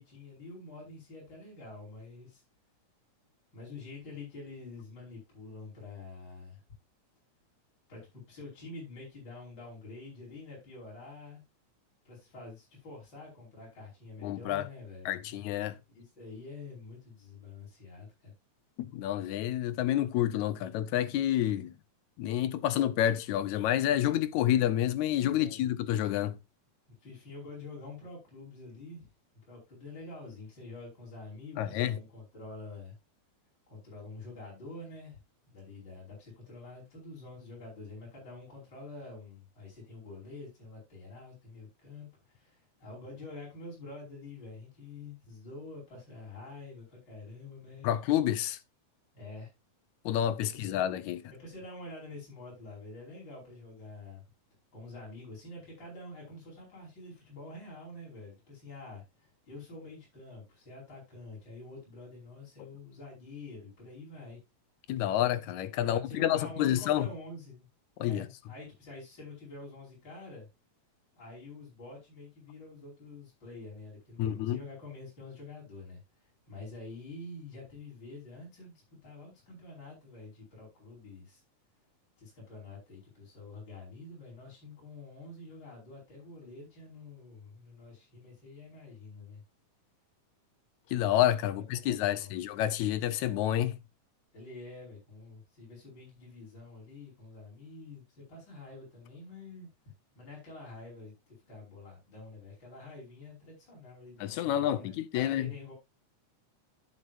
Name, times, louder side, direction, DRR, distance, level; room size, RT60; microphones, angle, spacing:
voice 1, 0.0-2.4 3.5-6.6 7.9-11.4 12.0-15.6 15.9-18.3 25.2-25.6 27.0-29.1 29.5-33.0 33.7-35.2 35.5-47.9 49.1-49.5 50.1-50.8 51.3-54.2 54.7-64.4 65.7-67.7 68.0-70.5 71.1-81.4 82.2-89.4 91.5-92.4 94.3-99.7 100.2-105.7, left 3 dB, 35° left, 5.6 m, -47 dB
voice 2, 14.2-14.6 15.1-15.7 18.8-21.7 22.2-26.4 31.6-32.0 47.8-48.6 50.1-51.2 64.9-67.1 68.0-68.3 74.2-74.6 90.9-93.8 104.2-105.5, left 12 dB, 80° left, 2.0 m, -29 dB
11.5 x 7.4 x 2.5 m
omnidirectional pair, 3.5 m